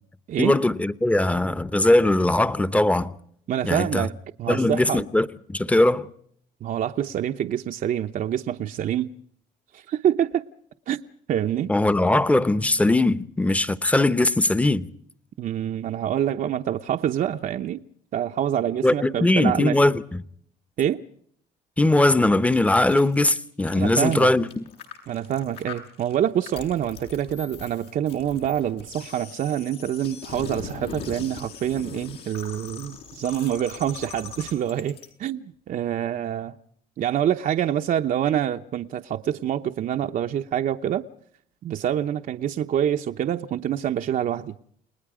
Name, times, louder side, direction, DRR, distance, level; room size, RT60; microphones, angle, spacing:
voice 1, 0.4-3.1 3.6-4.1 4.5-6.1 11.7-14.9 18.8-20.2 21.8-24.6, left 2 dB, 10° left, 0.9 m, -20 dB
voice 2, 3.5-5.0 6.6-9.1 9.7-10.4 10.9-11.0 11.3-11.7 15.4-17.8 18.1-19.8 20.8-21.0 23.7-24.3 25.1-36.5 37.0-41.0 41.6-44.6, right 10 dB, 55° right, 0.8 m, -26 dB
sound 1, 22.5-35.1, left 7 dB, 85° left, 7.4 m, -41 dB
29.5 x 19.5 x 5.0 m
cardioid pair, 110°, 17 cm